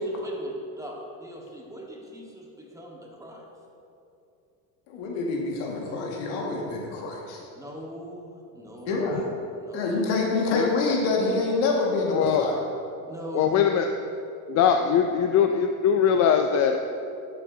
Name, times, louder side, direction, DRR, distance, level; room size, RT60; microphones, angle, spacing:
voice 1, 0.0-3.5 7.5-10.0 13.0-13.9, equal, 5° right, -2 dB, 1.3 m, -40 dB
voice 2, 4.9-7.4 8.9-9.2 9.7-12.6, left 3 dB, 75° left, -1 dB, 1.8 m, -26 dB
voice 3, 12.1-12.5 13.3-13.9 14.5-16.8, left 8 dB, 40° left, 5 dB, 0.4 m, -21 dB
11.0 x 7.6 x 2.7 m, 2.7 s
supercardioid pair, 105°, 44 cm